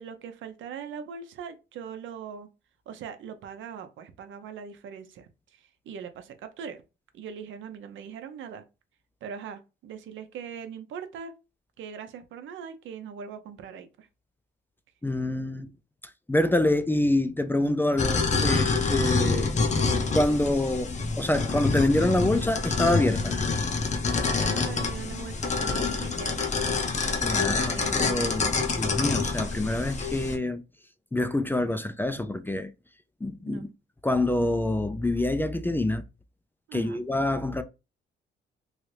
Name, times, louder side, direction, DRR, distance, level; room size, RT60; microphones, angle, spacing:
voice 1, 0.0-2.5 2.9-6.8 7.1-8.6 9.2-11.3 11.8-14.1 24.2-26.5 27.1-28.3 33.5-33.7 36.7-37.0, right 7 dB, 75° right, 0.7 m, -41 dB
voice 2, 15.0-15.7 16.3-19.9 20.1-23.3 27.2-30.6 31.1-32.7 33.2-33.7 34.0-36.0 36.7-37.6, left 1 dB, 10° left, 0.4 m, -26 dB
sound 1, 18.0-30.4, left 4 dB, 35° left, 0.7 m, -27 dB
3.1 x 2.5 x 3.2 m
cardioid pair, 90°, 20 cm